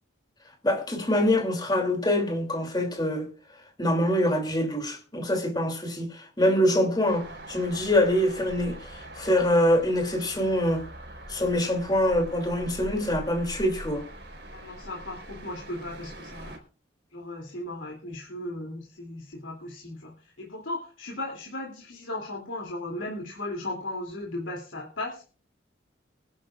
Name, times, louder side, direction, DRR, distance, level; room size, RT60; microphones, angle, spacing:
voice 1, 0.6-3.3 3.8-10.9 11.3-14.0, left 1 dB, 20° left, 2.9 m, -25 dB
sound 1, 7.0-16.6, right 1 dB, 60° right, 4.1 m, -43 dB
voice 2, 14.5-16.6 17.1-25.3, left 1 dB, 85° left, 2.9 m, -36 dB
23.5 x 11.5 x 2.5 m
head